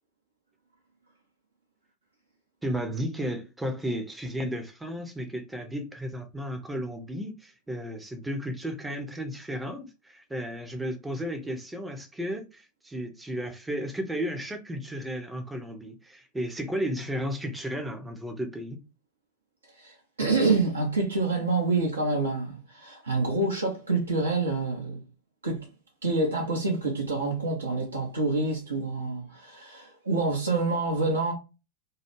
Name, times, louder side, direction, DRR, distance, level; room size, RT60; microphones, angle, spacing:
voice 1, 2.6-18.8, equal, 5° right, 0.5 m, -34 dB
voice 2, 19.8-25.0 25.4-25.6 26.0-31.3, right 3 dB, 75° right, 0.6 m, -27 dB
2.3 x 2.0 x 3.0 m
figure-of-eight pair, 90°, 0 cm